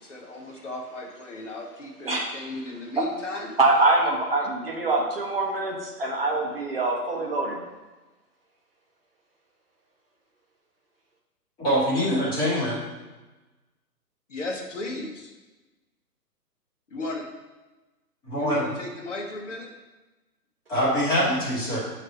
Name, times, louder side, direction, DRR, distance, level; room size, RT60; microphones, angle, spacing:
voice 1, 0.0-3.5 14.3-15.3 16.9-17.3 18.4-19.7, left 2 dB, 45° left, 1 dB, 1.0 m, -35 dB
voice 2, 3.6-7.6, right 2 dB, 35° right, -1 dB, 0.7 m, -24 dB
voice 3, 11.6-12.8 18.3-18.7 20.7-21.8, equal, 10° left, -8 dB, 1.2 m, -24 dB
6.3 x 3.3 x 5.1 m, 1.2 s
figure-of-eight pair, 135°, 49 cm